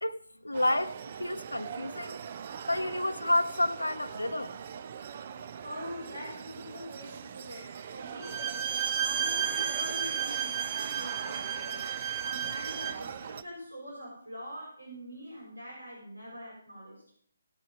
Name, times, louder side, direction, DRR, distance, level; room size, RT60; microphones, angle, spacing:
voice 1, 0.4-2.2 2.7-4.6, left 1 dB, 85° left, 0.7 m, -30 dB
sound 1, 0.5-13.4, right 7 dB, 40° right, 0.6 m, -42 dB
voice 2, 5.6-11.9 12.2-17.0, equal, 90° right, 5.6 m, -44 dB
Bowed string instrument, 8.2-13.1, right 8 dB, 20° right, 1.0 m, -33 dB
17.5 x 6.1 x 5.2 m
figure-of-eight pair, 145°, 0 cm